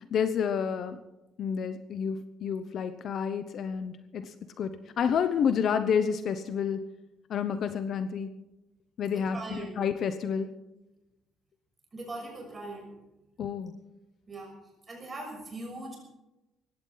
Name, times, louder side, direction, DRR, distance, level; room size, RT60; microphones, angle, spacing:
voice 1, 0.1-1.0 1.4-6.8 7.3-8.3 9.0-10.5 13.4-13.7, left 7 dB, 45° left, 9 dB, 0.9 m, -29 dB
voice 2, 9.1-9.8 11.9-12.9 14.3-14.5 14.9-16.0, right 2 dB, 20° right, 0 dB, 6.4 m, -40 dB
20.0 x 16.0 x 4.1 m, 0.96 s
cardioid pair, 165°, 0 cm